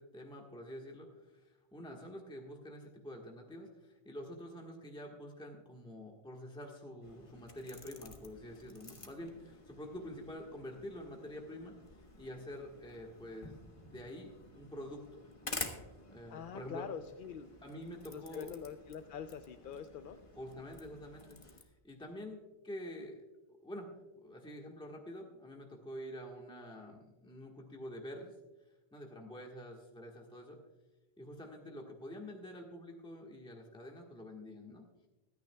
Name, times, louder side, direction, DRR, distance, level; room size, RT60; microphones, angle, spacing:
voice 1, 0.0-11.8 12.2-13.6 13.9-15.6 16.1-16.9 17.6-18.5 20.3-28.3 28.9-30.6 31.2-34.9, equal, 5° left, 0 dB, 1.4 m, -47 dB
sound 1, 7.0-21.6, left 2 dB, 30° left, 1.2 m, -50 dB
voice 2, 16.3-17.5 18.1-20.2, left 8 dB, 60° left, 8 dB, 0.7 m, -44 dB
24.5 x 9.3 x 2.3 m, 1.1 s
omnidirectional pair, 1.1 m